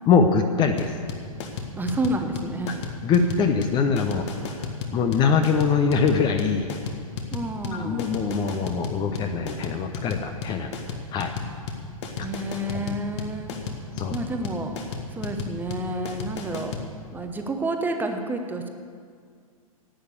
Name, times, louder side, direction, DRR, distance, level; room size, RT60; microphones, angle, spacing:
voice 1, 0.1-0.9 3.0-4.3 4.9-6.7 7.7-10.7 11.1-11.3 12.7-12.9 14.0-14.1, left 5 dB, 25° left, 6 dB, 0.8 m, -23 dB
sound 1, 0.8-16.9, left 5 dB, 50° left, 1.7 m, -33 dB
voice 2, 1.8-2.8 7.3-8.2 12.2-13.6 14.1-14.8 15.1-16.7 17.1-18.7, right 2 dB, 10° right, 5 dB, 0.9 m, -29 dB
11.5 x 8.6 x 8.4 m, 2.1 s
figure-of-eight pair, 115°, 19 cm